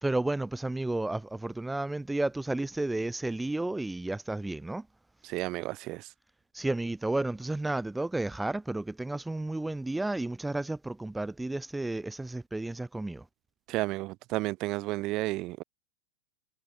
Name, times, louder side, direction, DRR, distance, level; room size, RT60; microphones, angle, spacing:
voice 1, 0.0-4.9 6.5-13.2, right 2 dB, 5° right, 3.2 m, -32 dB
voice 2, 5.2-6.1 13.7-15.6, right 19 dB, 40° right, 3.7 m, -32 dB
figure-of-eight pair, 90°, 0 cm